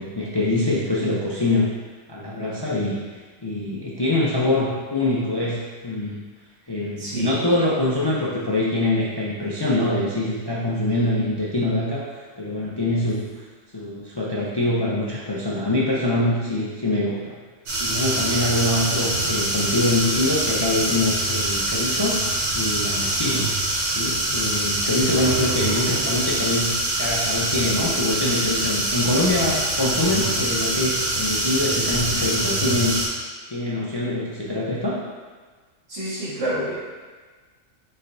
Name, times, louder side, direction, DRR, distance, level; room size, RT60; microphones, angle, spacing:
voice 1, 0.0-1.7 2.1-6.2 6.7-13.4 13.7-17.4 17.8-22.2 22.5-23.5 23.9-33.0 33.5-35.0, left 1 dB, 40° left, -6 dB, 0.3 m, -24 dB
voice 2, 7.0-7.4 23.2-23.5 35.9-36.7, right 1 dB, 75° right, -10 dB, 2.0 m, -28 dB
sound 1, 17.7-33.1, right 1 dB, 55° right, 1.2 m, -24 dB
6.3 x 3.2 x 2.6 m, 1.4 s
omnidirectional pair, 1.3 m